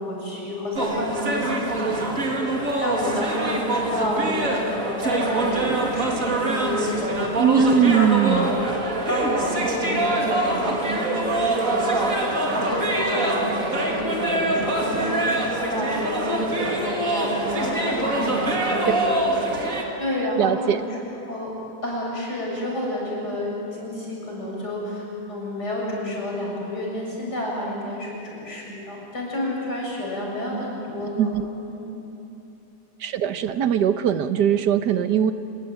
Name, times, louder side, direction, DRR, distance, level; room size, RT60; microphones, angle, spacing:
voice 1, 0.0-8.6 9.1-19.1 19.5-21.0 21.3-21.6 21.8-31.3 31.7-31.8, left 1 dB, 85° left, -3 dB, 7.5 m, -30 dB
sound 1, 0.8-19.8, right 2 dB, 55° right, 2.9 m, -24 dB
voice 2, 7.4-8.6 20.4-20.8 31.2-31.5 33.0-35.3, right 8 dB, 90° right, 10 dB, 1.6 m, -20 dB
26.0 x 21.5 x 9.1 m, 2.9 s
omnidirectional pair, 1.7 m